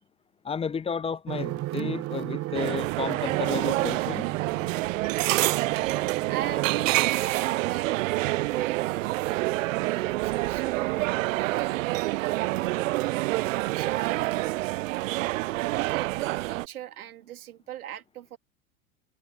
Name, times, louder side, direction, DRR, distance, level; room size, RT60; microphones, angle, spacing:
voice 1, 0.4-4.3, left 6 dB, 15° left, 0.7 m, -32 dB
sound 1, 1.3-7.1, right 17 dB, 35° right, 1.0 m, -34 dB
sound 2, 2.5-16.7, right 19 dB, 65° right, 0.5 m, -27 dB
voice 2, 5.0-5.5 6.3-8.1 8.5-9.6 9.9-12.2 13.7-14.7 15.3-18.4, right 11 dB, 80° right, 2.6 m, -38 dB
hypercardioid pair, 105°, 43 cm